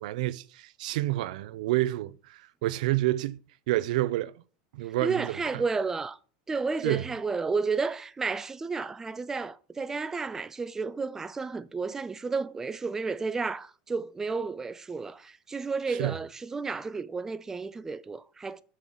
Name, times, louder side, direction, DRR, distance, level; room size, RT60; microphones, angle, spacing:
voice 1, 0.0-3.4 3.7-4.3 4.7-5.6 6.8-7.0 16.0-16.2, right 16 dB, 80° right, 0.6 m, -29 dB
voice 2, 5.0-6.2 6.5-18.6, right 4 dB, 10° right, 0.3 m, -32 dB
6.3 x 5.7 x 7.0 m
supercardioid pair, 150°, 4 cm